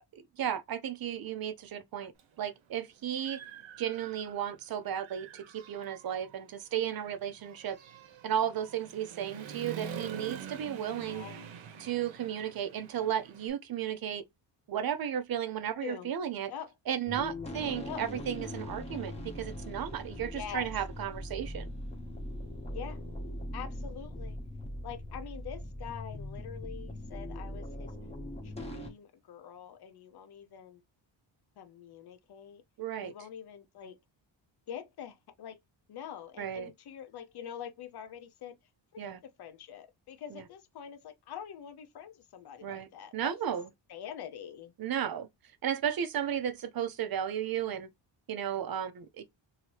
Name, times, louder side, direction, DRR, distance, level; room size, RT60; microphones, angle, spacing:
voice 1, 0.1-2.1 2.4-3.4 3.8-7.8 8.2-11.2 11.8-14.2 14.7-16.5 16.9-21.7 32.8-33.1 36.4-36.7 39.0-39.2 40.3-40.4 42.6-43.7 44.8-45.3 45.6-47.9 48.3-49.2, right 9 dB, 50° right, 0.5 m, -34 dB
Human voice / Motorcycle, 2.2-2.3 2.8-4.6 4.9-13.5, right 7 dB, 75° right, 0.9 m, -46 dB
voice 2, 11.0-11.5 15.8-16.1 16.5-16.7 17.8-18.0 20.3-20.7 22.7-23.0 23.5-24.4 24.8-27.9 28.4-30.8 31.6-32.6 33.0-34.0 34.7-35.6 35.9-38.6 38.9-39.1 39.4-43.5 43.9-44.7, left 9 dB, 55° left, 0.7 m, -45 dB
sound 1, 17.1-28.9, left 1 dB, 15° left, 0.9 m, -40 dB
2.8 x 2.7 x 2.9 m
wide cardioid pair, 160°, 46 cm